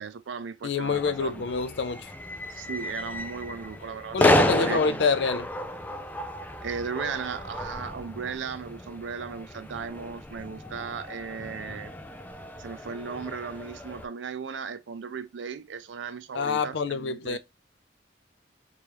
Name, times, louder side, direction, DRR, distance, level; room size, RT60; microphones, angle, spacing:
voice 1, 0.0-1.5 2.5-5.1 6.6-11.9 12.6-17.4, right 6 dB, 85° right, 0.5 m, -36 dB
voice 2, 0.6-2.1 4.1-5.5 16.3-17.4, left 5 dB, 70° left, 0.4 m, -26 dB
sound 1, 0.8-14.0, left 1 dB, 10° left, 0.4 m, -31 dB
3.4 x 3.2 x 2.9 m
head